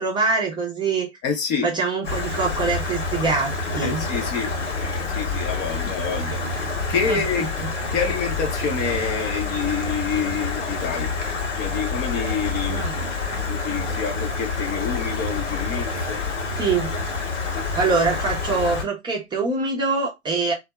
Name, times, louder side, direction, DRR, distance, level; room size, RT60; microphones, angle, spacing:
voice 1, 0.0-1.1 1.6-4.1 7.1-7.7 12.7-12.9 16.6-16.9 17.7-20.5, right 4 dB, 15° right, 0.6 m, -24 dB
voice 2, 1.2-1.7 3.8-6.4 6.7-7.5 7.9-11.1 11.5-13.1 13.5-16.2, left 6 dB, 30° left, 0.7 m, -28 dB
Stream, 2.0-18.8, left 3 dB, 75° left, 1.1 m, -27 dB
2.6 x 2.2 x 2.2 m
figure-of-eight pair, 100°, 36 cm